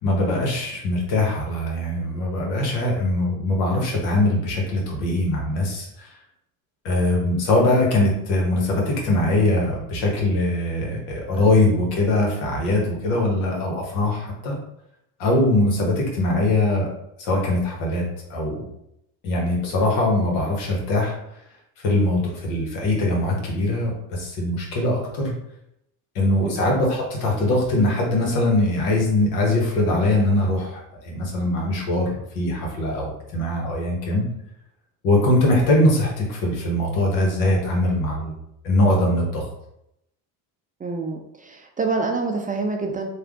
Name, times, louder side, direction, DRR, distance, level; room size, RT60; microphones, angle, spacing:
voice 1, 0.0-5.9 6.8-14.6 15.2-16.9 17.2-18.0 18.3-18.7 19.2-21.2 21.8-25.3 26.1-34.2 35.0-38.3 38.6-39.4, left 1 dB, 85° left, -1 dB, 1.3 m, -22 dB
voice 2, 40.8-43.1, right 3 dB, 20° right, 2 dB, 0.3 m, -26 dB
3.4 x 2.4 x 3.6 m, 0.79 s
supercardioid pair, 95°, 43 cm